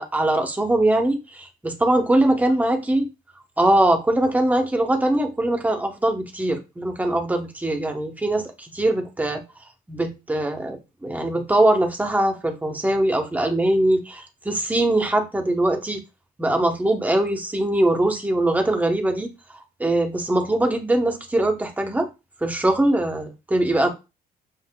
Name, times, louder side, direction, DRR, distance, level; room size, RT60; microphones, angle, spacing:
voice 1, 0.0-3.1 3.6-9.4 9.9-16.0 16.4-19.3 19.8-22.1 22.4-23.9, right 1 dB, 10° right, 0.9 m, -22 dB
7.5 x 2.6 x 2.2 m
cardioid pair, 110°, 17 cm